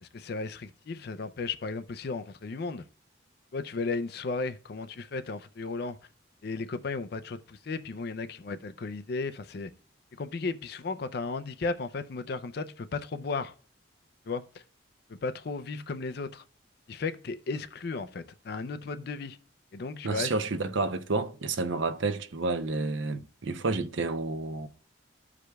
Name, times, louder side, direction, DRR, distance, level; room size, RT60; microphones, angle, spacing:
voice 1, 0.0-2.8 3.5-6.0 6.4-9.7 10.2-13.5 14.3-14.6 15.2-16.4 16.9-19.4 19.7-20.3, left 4 dB, 55° left, 0.4 m, -35 dB
voice 2, 20.0-24.7, right 3 dB, 75° right, 0.6 m, -30 dB
13.0 x 4.8 x 2.3 m
head